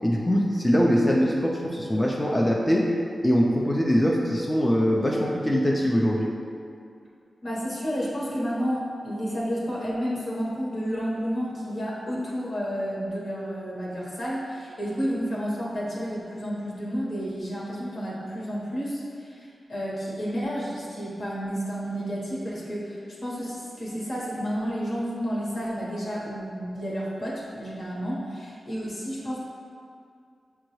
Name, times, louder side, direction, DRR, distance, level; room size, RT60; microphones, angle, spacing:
voice 1, 0.0-2.9 3.2-6.3, equal, 15° left, -3 dB, 0.5 m, -22 dB
voice 2, 7.4-29.4, equal, 60° left, -6 dB, 1.2 m, -31 dB
6.3 x 2.3 x 3.1 m, 2.4 s
cardioid pair, 60°, 0 cm